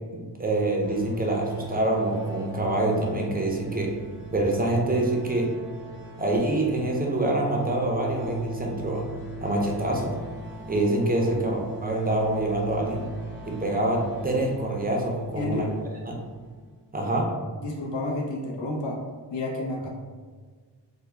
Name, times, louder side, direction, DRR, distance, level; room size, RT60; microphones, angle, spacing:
voice 1, 0.1-3.9 4.3-5.5 6.2-9.0 9.4-10.1 10.7-13.0 13.5-15.7 16.1-16.2 16.9-17.3, right 2 dB, 20° right, -1 dB, 0.5 m, -26 dB
sound 1, 0.8-16.7, right 1 dB, 25° left, 0.6 m, -39 dB
voice 2, 15.3-15.8 17.6-19.1 19.3-19.9, left 2 dB, 80° left, -2 dB, 0.7 m, -30 dB
3.5 x 2.2 x 3.2 m, 1.5 s
wide cardioid pair, 100°, 44 cm